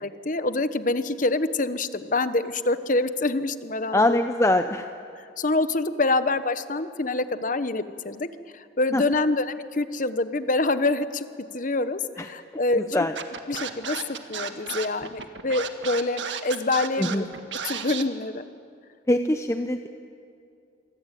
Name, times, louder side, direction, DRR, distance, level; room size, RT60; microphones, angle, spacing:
voice 1, 0.0-4.2 5.1-8.3 8.5-11.3 11.5-13.1 13.5-14.0 14.3-17.2 17.6-18.4, left 2 dB, 45° left, 12 dB, 1.1 m, -26 dB
voice 2, 3.9-4.9 8.9-9.0 12.2-12.3 12.8-13.1 17.0-17.2 19.1-19.9, left 1 dB, 15° left, 7 dB, 0.7 m, -23 dB
Scratching (performance technique), 13.2-18.0, right 7 dB, 90° right, 1.7 m, -33 dB
27.0 x 23.5 x 9.2 m, 2.4 s
head